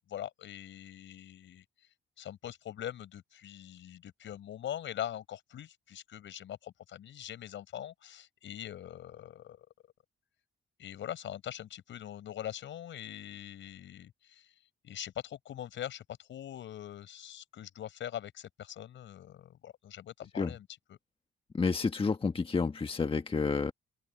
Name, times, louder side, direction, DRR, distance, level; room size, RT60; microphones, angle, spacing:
voice 1, 0.1-1.6 2.2-9.7 10.8-14.5 14.8-21.0, left 11 dB, 70° left, 6.4 m, -42 dB
voice 2, 21.5-23.7, left 4 dB, 25° left, 1.4 m, -30 dB
cardioid pair, 90°, 20 cm